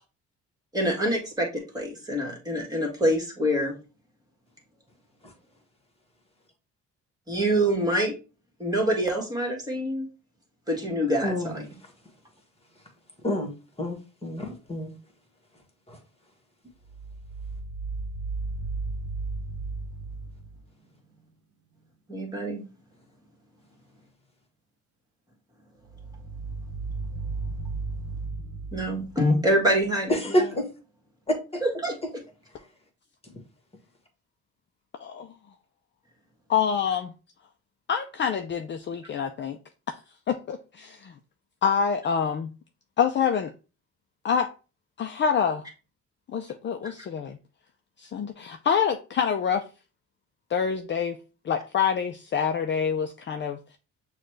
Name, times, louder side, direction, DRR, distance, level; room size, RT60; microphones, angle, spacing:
voice 1, 0.7-3.8 7.3-8.1 8.6-10.1 10.7-11.7 22.1-22.6 28.7-30.6 31.6-32.2 46.8-46.9, equal, 15° right, 1.6 m, -26 dB
voice 2, 13.8-14.9 30.3-30.7, equal, 20° left, 1.4 m, -27 dB
sound 1, 16.9-20.7 25.9-30.0, right 3 dB, 50° right, 1.0 m, -35 dB
voice 3, 36.5-37.1 37.9-39.6 40.3-41.1 41.6-42.5 43.0-43.5 44.2-44.5 45.0-45.7 46.3-47.4 48.0-49.6 50.5-51.2 51.4-53.8, left 7 dB, 40° left, 0.4 m, -26 dB
6.3 x 2.3 x 3.1 m
cardioid pair, 90°, 30 cm